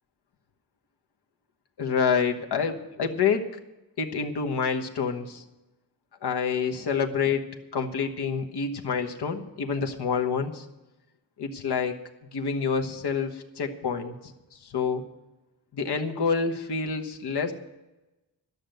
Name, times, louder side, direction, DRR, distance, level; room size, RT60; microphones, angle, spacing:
voice 1, 1.8-3.5 4.0-5.4 6.2-7.4 7.7-10.6 11.4-12.0 12.3-14.1 14.6-15.0 15.7-17.5, left 6 dB, 70° left, 4 dB, 1.2 m, -27 dB
12.5 x 6.7 x 9.0 m, 1.0 s
wide cardioid pair, 170°, 40 cm